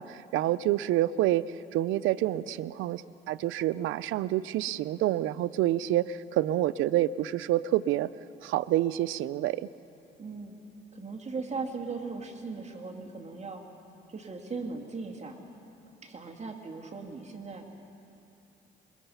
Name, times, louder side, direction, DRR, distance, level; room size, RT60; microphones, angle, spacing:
voice 1, 0.0-1.5 1.7-3.0 3.3-8.1 8.4-9.7, right 14 dB, 90° right, 17 dB, 0.5 m, -27 dB
voice 2, 10.2-10.6 10.9-13.6 14.1-15.4 16.0-17.7, right 4 dB, 35° right, 2 dB, 2.3 m, -38 dB
26.5 x 22.5 x 5.6 m, 2.8 s
cardioid pair, 90°, 20 cm